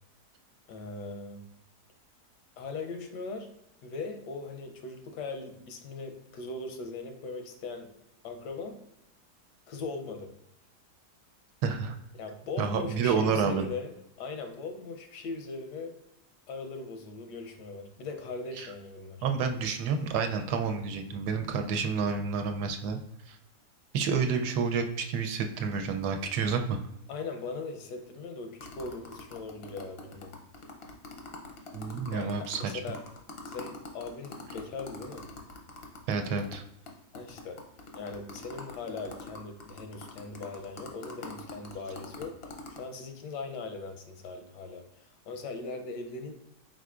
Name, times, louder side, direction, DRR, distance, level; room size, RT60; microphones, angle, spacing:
voice 1, 0.7-1.5 2.6-3.5 3.8-7.9 8.2-8.8 9.7-10.3 12.1-13.9 14.2-16.0 16.5-19.2 27.1-30.3 32.1-33.0 33.5-35.3 37.1-37.6 37.9-46.3, left 3 dB, 90° left, 5 dB, 1.3 m, -39 dB
voice 2, 11.6-11.9 12.6-13.7 18.6-18.7 19.2-23.0 23.3-23.4 23.9-26.8 31.7-32.7 36.1-36.6, right 5 dB, 80° right, 6 dB, 1.1 m, -29 dB
sound 1, 28.6-36.6 36.9-37.0 37.1-42.8, left 2 dB, 60° left, 0.6 m, -44 dB
4.6 x 3.7 x 2.4 m, 0.83 s
omnidirectional pair, 1.7 m